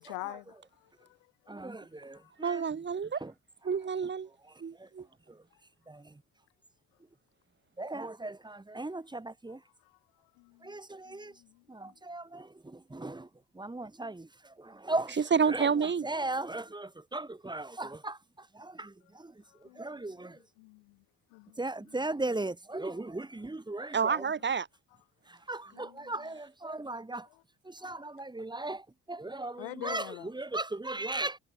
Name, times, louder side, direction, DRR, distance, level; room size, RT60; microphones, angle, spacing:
voice 1, 0.0-1.5 2.1-2.3 5.5-5.6 7.9-8.0 9.5-10.8 11.0-12.0 19.0-19.1 19.4-21.0 21.3-22.2 22.9-23.1 24.4-24.5 25.5-26.3 27.3-27.4 27.8-28.1 29.6-30.3, left 40 dB or more, 90° left, 2.3 m, -48 dB
voice 2, 1.5-2.6 3.2-3.3 4.8-4.9 5.9-6.0 7.8-9.6 10.6-11.3 11.7-13.3 13.5-14.3 14.6-15.2 15.5-15.7 16.0-18.2 18.5-19.3 19.8-20.4 21.6-24.2 25.5-27.3 27.7-28.8 29.1-30.1 30.3-31.4, right 2 dB, 10° right, 1.3 m, -37 dB
voice 3, 2.4-3.1 3.7-4.3 4.6-5.1 15.2-16.1 23.9-24.7, right 6 dB, 30° right, 1.2 m, -28 dB
supercardioid pair, 60°, 37 cm